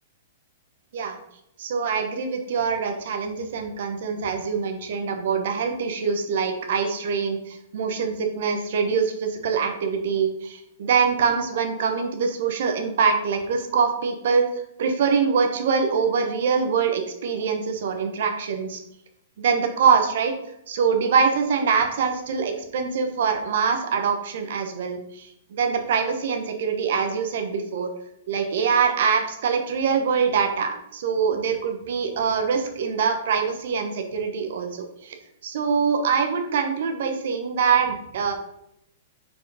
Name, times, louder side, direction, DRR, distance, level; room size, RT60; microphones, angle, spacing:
voice 1, 1.6-14.5 14.8-18.8 19.4-20.3 20.7-27.9 28.3-35.2 35.4-38.3, right 6 dB, 65° right, 5 dB, 1.1 m, -24 dB
5.0 x 4.4 x 4.9 m, 0.79 s
hypercardioid pair, 130°, 0 cm